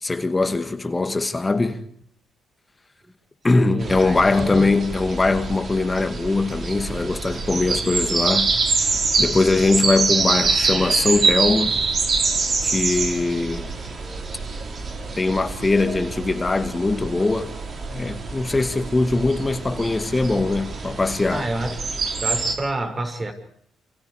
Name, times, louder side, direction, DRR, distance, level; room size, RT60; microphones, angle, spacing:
voice 1, 0.0-1.8 3.4-11.8 12.6-13.7 15.2-17.5 17.9-21.5, left 3 dB, 20° left, 2.2 m, -21 dB
voice 2, 3.6-4.7 21.3-21.8 22.1-23.3, right 2 dB, 30° right, 6.0 m, -28 dB
sound 1, 3.8-22.6, right 4 dB, 50° right, 5.1 m, -25 dB
29.0 x 28.5 x 5.0 m
cardioid pair, 90°, 0 cm